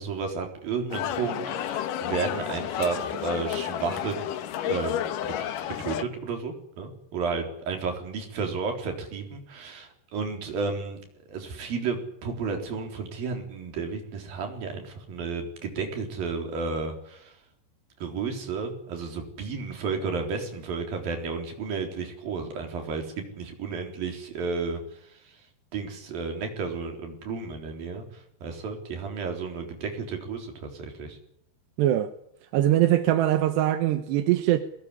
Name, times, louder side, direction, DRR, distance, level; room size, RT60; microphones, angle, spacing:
voice 1, 0.0-4.2 4.7-5.0 5.2-5.5 5.8-17.3 18.0-24.8 25.7-28.1 28.4-31.2, right 4 dB, 60° right, 5.5 m, -32 dB
sound 1, 0.9-6.0, left 10 dB, 65° left, 2.4 m, -31 dB
voice 2, 31.8-32.1 32.5-34.6, right 13 dB, 85° right, 3.3 m, -22 dB
22.5 x 19.0 x 9.9 m
omnidirectional pair, 4.8 m